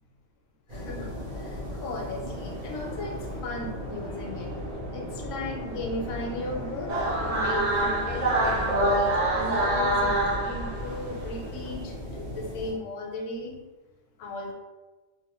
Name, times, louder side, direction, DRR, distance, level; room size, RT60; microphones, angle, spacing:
voice 1, 0.7-3.2 3.4-4.5 4.9-6.9 7.3-13.6 14.2-14.5, left 2 dB, 75° left, 1 dB, 1.0 m, -36 dB
sound 1, 0.7-12.7, equal, 90° right, 1.6 m, -37 dB
sound 2, 6.9-11.2, right 1 dB, 60° right, 0.5 m, -25 dB
3.2 x 2.1 x 3.0 m, 1.2 s
omnidirectional pair, 1.4 m